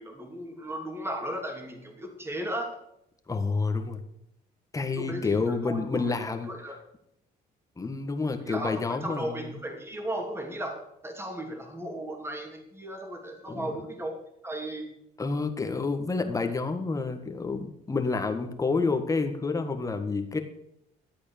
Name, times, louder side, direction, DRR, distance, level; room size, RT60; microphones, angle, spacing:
voice 1, 0.0-2.8 5.0-6.1 6.4-6.8 8.5-14.1 14.4-14.9, right 1 dB, 15° right, 3 dB, 2.8 m, -36 dB
voice 2, 3.3-4.0 4.7-6.5 7.8-9.5 13.5-13.8 15.2-20.4, left 4 dB, 20° left, 5 dB, 1.7 m, -29 dB
13.0 x 8.5 x 6.8 m, 0.79 s
cardioid pair, 110°, 17 cm